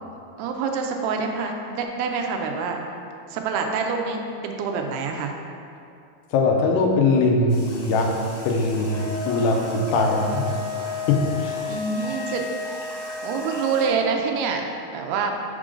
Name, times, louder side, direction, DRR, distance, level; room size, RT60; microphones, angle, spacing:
voice 1, 0.4-2.8 3.3-5.3 11.7-13.0 13.2-14.7 14.9-15.3, right 5 dB, 85° right, 3 dB, 2.6 m, -26 dB
voice 2, 6.3-8.1 8.5-10.4 10.7-11.6, left 3 dB, 85° left, 1 dB, 2.8 m, -21 dB
sound 1, 7.5-13.9, left 1 dB, 70° left, 2.9 m, -41 dB
Wind instrument woodwind instrument, 8.8-14.1, left 3 dB, 70° right, 2.7 m, -33 dB
6.4 x 3.8 x 4.9 m, 2.6 s
omnidirectional pair, 4.6 m